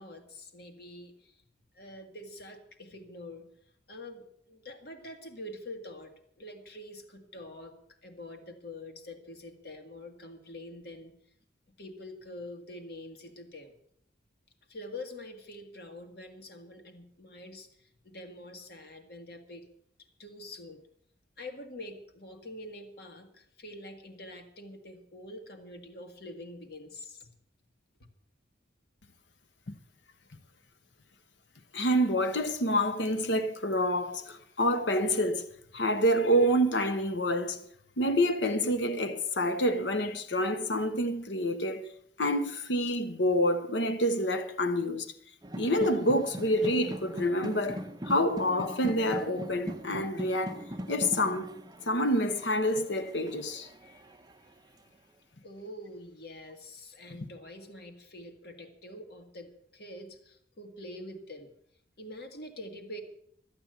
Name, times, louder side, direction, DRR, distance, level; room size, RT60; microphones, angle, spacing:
voice 1, 0.0-1.4 1.7-3.4 3.9-6.1 6.4-7.7 8.0-11.1 11.8-13.7 14.7-19.6 20.2-20.8 21.4-27.3 55.4-61.5 62.0-63.0, left 1 dB, 60° left, 1.9 m, -45 dB
voice 2, 31.7-35.4 35.7-37.6 38.0-41.9 42.2-45.1 45.6-51.5 51.9-53.7, equal, 80° left, 1.1 m, -27 dB
sound 1, 45.4-54.3, equal, 20° right, 0.8 m, -40 dB
14.0 x 8.8 x 8.0 m
head